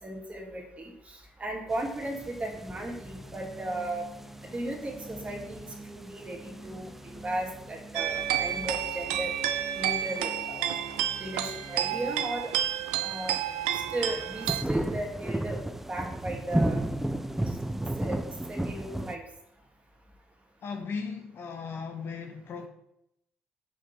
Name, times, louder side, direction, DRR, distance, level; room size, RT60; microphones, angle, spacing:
voice 1, 0.0-4.0 4.4-9.3 9.8-10.8 11.1-12.5 13.0-13.4 13.7-15.6 15.9-16.8 18.0-18.2 18.5-19.2, right 1 dB, 25° right, -1 dB, 2.7 m, -36 dB
sound 1, 1.7-19.1, right 1 dB, 5° right, 0.6 m, -35 dB
sound 2, 2.3-13.8, right 1 dB, 15° left, 1.6 m, -48 dB
sound 3, 7.9-14.6, right 11 dB, 80° right, 0.5 m, -30 dB
voice 2, 20.6-22.7, left 5 dB, 55° left, 5 dB, 1.0 m, -37 dB
5.8 x 5.0 x 5.8 m, 0.81 s
hypercardioid pair, 55°, 5 cm